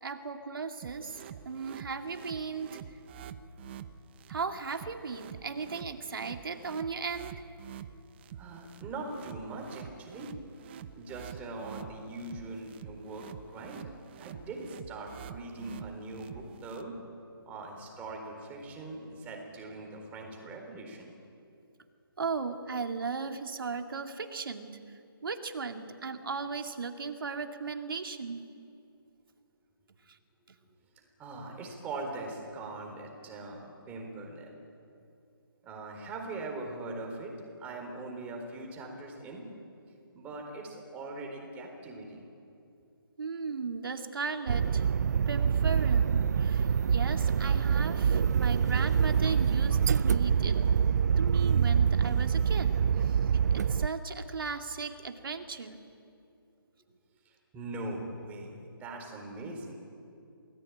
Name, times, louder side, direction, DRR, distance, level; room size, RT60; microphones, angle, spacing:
voice 1, 0.0-2.7 4.3-7.3 22.2-28.4 43.2-44.8 45.3-50.6 51.2-52.7 53.0-53.2 53.5-55.8, right 5 dB, 65° right, 5 dB, 2.6 m, -36 dB
sound 1, 0.8-16.8, right 8 dB, 30° right, 1.0 m, -47 dB
voice 2, 8.3-10.3 11.0-13.9 14.2-17.0 17.5-21.1 31.2-34.6 35.6-37.3 37.6-39.5 40.1-42.2 57.5-58.5 58.8-59.7, right 2 dB, 10° right, 1 dB, 4.2 m, -41 dB
sound 2, 44.5-53.9, right 7 dB, 45° right, 0.5 m, -25 dB
29.0 x 19.5 x 8.7 m, 2.5 s
hypercardioid pair, 155°, 13 cm